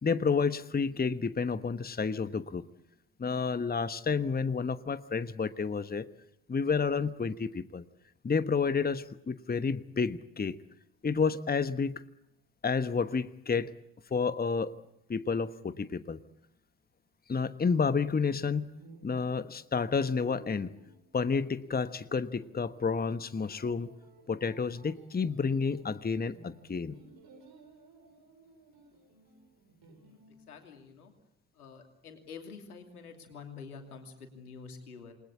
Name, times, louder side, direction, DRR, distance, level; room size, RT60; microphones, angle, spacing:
voice 1, 0.0-2.7 3.2-6.1 6.5-7.8 8.2-10.6 11.0-12.0 12.6-13.7 14.1-14.7 15.1-16.2 17.3-18.7 19.0-20.7 21.1-23.9 24.3-27.0, left 5 dB, 20° left, 13 dB, 1.3 m, -30 dB
sound 1, 18.7-30.4, right 2 dB, 55° right, 7.0 m, -57 dB
voice 2, 30.5-31.1 31.5-35.1, left 5 dB, 85° left, 5 dB, 2.9 m, -47 dB
28.5 x 21.0 x 8.4 m, 0.81 s
figure-of-eight pair, 45°, 44 cm